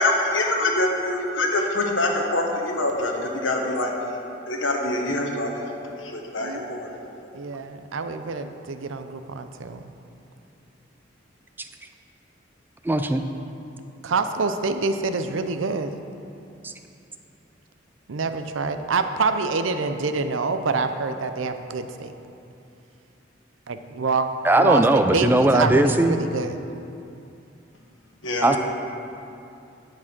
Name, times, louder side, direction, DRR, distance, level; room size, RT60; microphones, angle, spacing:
voice 1, 0.0-3.9 4.5-5.5 6.0-6.9 28.2-28.6, left 2 dB, 85° left, 1 dB, 1.3 m, -24 dB
voice 2, 6.4-6.7 7.3-9.8 14.0-15.9 18.1-22.1 23.7-24.3 24.6-26.6, right 4 dB, 90° right, 9 dB, 0.6 m, -26 dB
voice 3, 12.8-13.2 16.6-16.7 24.4-26.2 28.4-28.6, right 1 dB, 10° right, 7 dB, 0.4 m, -19 dB
10.0 x 6.1 x 6.0 m, 2.7 s
head